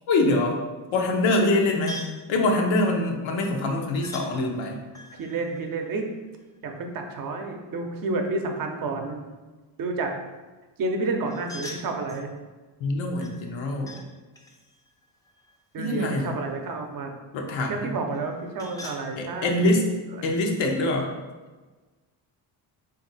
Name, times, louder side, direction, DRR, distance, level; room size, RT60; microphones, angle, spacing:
voice 1, 0.1-0.6 0.9-2.0 2.3-4.8 12.8-14.0 15.8-16.3 17.3-17.9 19.2-19.9 20.2-21.1, left 2 dB, 85° left, 2 dB, 0.8 m, -24 dB
sound 1, 1.9-2.3 4.0-4.3 4.9-6.7 11.2-12.3 13.2-14.1 14.3-16.2 18.1-19.0, left 1 dB, 10° left, 0.5 m, -43 dB
voice 2, 5.1-6.1 6.6-9.2 9.8-10.1 10.8-12.3 15.7-17.1 17.7-19.8 20.1-20.2, right 3 dB, 50° right, 3 dB, 0.7 m, -30 dB
3.6 x 2.7 x 3.9 m, 1.3 s
cardioid pair, 100°, 44 cm